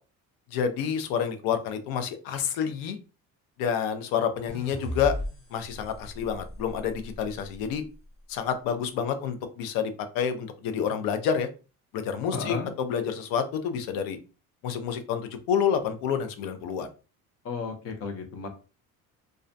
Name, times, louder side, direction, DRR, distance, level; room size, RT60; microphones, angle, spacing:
voice 1, 0.5-3.0 3.6-5.1 5.5-7.8 8.3-11.5 11.9-14.2 14.6-16.9, left 7 dB, 90° left, 8 dB, 0.6 m, -28 dB
sound 1, 4.5-7.7, left 1 dB, ahead, 0.5 m, -37 dB
voice 2, 12.3-12.7 17.4-18.5, left 5 dB, 45° left, 6 dB, 0.6 m, -33 dB
2.4 x 2.1 x 2.5 m, 0.34 s
cardioid pair, 140°, 34 cm